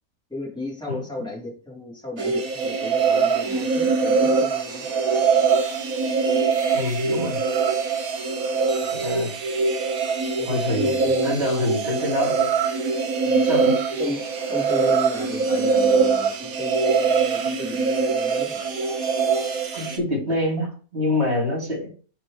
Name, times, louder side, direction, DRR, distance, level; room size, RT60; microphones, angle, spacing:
voice 1, 0.3-4.9 8.8-8.9 10.4-11.5 13.2-13.5 14.0-18.7, left 2 dB, 5° left, -5 dB, 2.6 m, -34 dB
sound 1, 2.2-20.0, right 5 dB, 70° right, 1.5 m, -23 dB
voice 2, 6.7-7.4 8.9-9.4 10.5-12.5 13.4-13.8 19.7-21.9, left 1 dB, 45° right, -2 dB, 3.0 m, -26 dB
4.8 x 4.7 x 4.8 m, 0.38 s
omnidirectional pair, 1.5 m